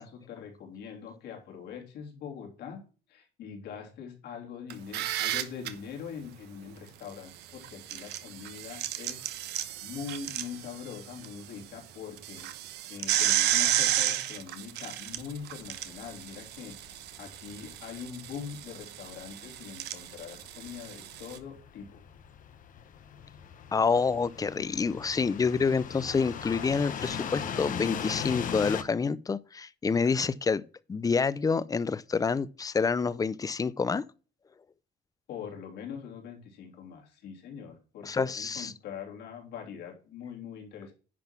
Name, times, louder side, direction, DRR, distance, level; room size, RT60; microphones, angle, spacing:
voice 1, 0.0-2.8 3.1-9.2 9.8-12.5 12.9-16.9 17.2-22.0 35.3-40.9, left 7 dB, 75° left, 3.2 m, -43 dB
sound 1, 4.7-5.7 7.6-11.3 11.6-11.7 12.2-21.4, right 13 dB, 85° right, 1.1 m, -32 dB
sound 2, 15.1-28.8, left 8 dB, 50° left, 0.9 m, -40 dB
voice 2, 23.7-30.6 30.9-34.0 38.0-38.7, left 5 dB, 20° left, 0.5 m, -28 dB
10.5 x 4.0 x 5.9 m
cardioid pair, 110°, 17 cm